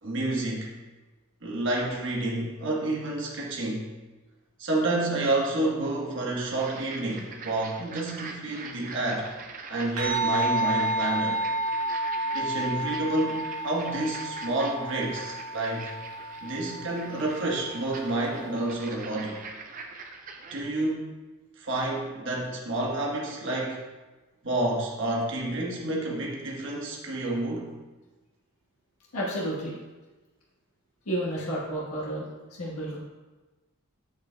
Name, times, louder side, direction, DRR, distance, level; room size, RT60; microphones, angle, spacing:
voice 1, 0.0-0.7 1.4-3.9 4.6-9.3 9.7-11.4 12.3-15.9 16.4-19.4 20.5-21.1 21.6-23.8 24.4-27.7, right 2 dB, 55° right, -2 dB, 1.2 m, -29 dB
sound 1, 6.6-20.6, right 4 dB, 40° right, 0.5 m, -43 dB
sound 2, 10.0-18.7, right 1 dB, 80° right, 1.8 m, -31 dB
voice 2, 29.1-29.8 31.0-33.0, right 1 dB, 85° left, -5 dB, 1.4 m, -31 dB
7.9 x 6.2 x 2.2 m, 1.2 s
head